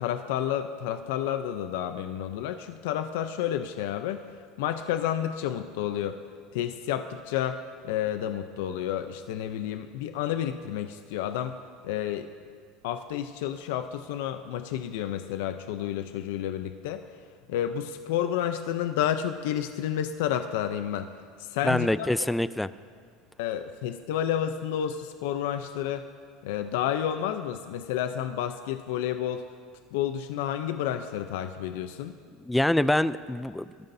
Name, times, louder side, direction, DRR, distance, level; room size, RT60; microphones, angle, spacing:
voice 1, 0.0-4.2 4.6-6.2 6.5-7.6 7.8-11.6 11.8-12.3 12.8-17.0 17.5-21.1 21.4-22.1 23.4-26.0 26.4-29.4 29.9-32.2, left 10 dB, 80° left, 8 dB, 0.6 m, -30 dB
voice 2, 21.6-22.7 32.4-33.6, left 1 dB, 5° left, 15 dB, 0.3 m, -25 dB
21.5 x 13.5 x 2.7 m, 2.2 s
supercardioid pair, 135°, 0 cm